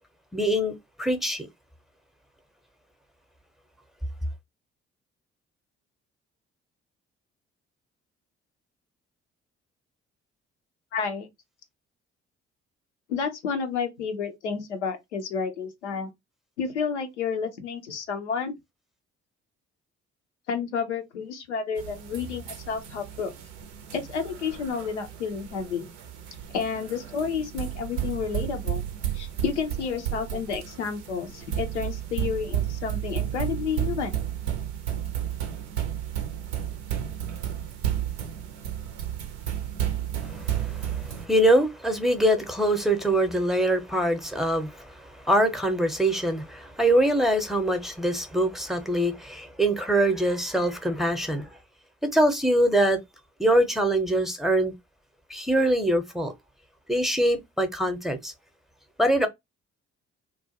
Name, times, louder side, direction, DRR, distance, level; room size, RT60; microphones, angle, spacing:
voice 1, 0.3-1.5 40.3-51.5 52.0-53.0 53.4-54.7 55.3-56.3 56.9-58.3 59.0-59.3, right 1 dB, ahead, 0.6 m, -24 dB
voice 2, 10.9-11.3 13.1-16.1 16.6-18.5 20.5-23.3 23.9-25.9 26.5-28.8 29.1-34.2, left 6 dB, 90° left, 0.5 m, -30 dB
sound 1, 21.8-41.3, right 10 dB, 85° right, 0.5 m, -32 dB
2.4 x 2.1 x 2.7 m
hypercardioid pair, 45°, 34 cm